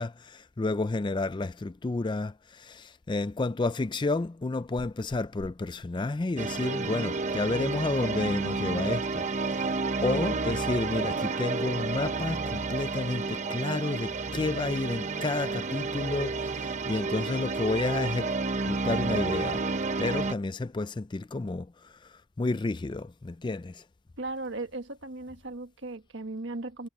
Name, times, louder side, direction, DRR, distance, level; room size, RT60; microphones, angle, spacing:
voice 1, 0.0-18.3 18.7-19.7 20.0-23.8, left 3 dB, 20° left, 0.3 m, -31 dB
sound 1, 6.4-20.3, right 3 dB, 35° right, 0.8 m, -31 dB
voice 2, 24.2-26.9, right 2 dB, 60° right, 1.6 m, -37 dB
head